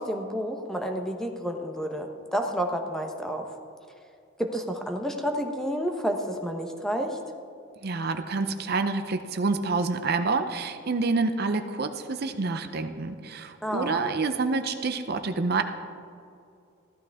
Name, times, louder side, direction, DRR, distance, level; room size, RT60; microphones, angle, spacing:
voice 1, 0.0-3.5 4.4-7.2 13.6-14.1, equal, 5° left, 3 dB, 0.9 m, -30 dB
voice 2, 7.8-15.6, right 3 dB, 55° right, 8 dB, 0.6 m, -28 dB
14.5 x 12.5 x 3.5 m, 2.5 s
head